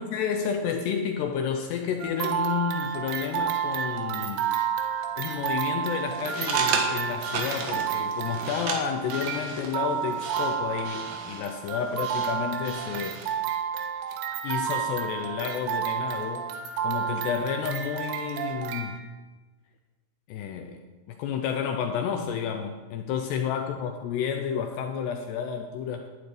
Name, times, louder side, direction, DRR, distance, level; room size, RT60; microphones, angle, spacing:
voice 1, 0.0-4.6 5.2-13.2 14.4-16.5 16.8-19.0 20.3-26.1, left 7 dB, 80° left, 5 dB, 2.5 m, -31 dB
sound 1, 2.0-19.0, right 8 dB, 85° right, 3.4 m, -31 dB
sound 2, 6.1-13.4, right 5 dB, 60° right, 2.9 m, -34 dB
12.0 x 8.1 x 9.3 m, 1.3 s
omnidirectional pair, 5.7 m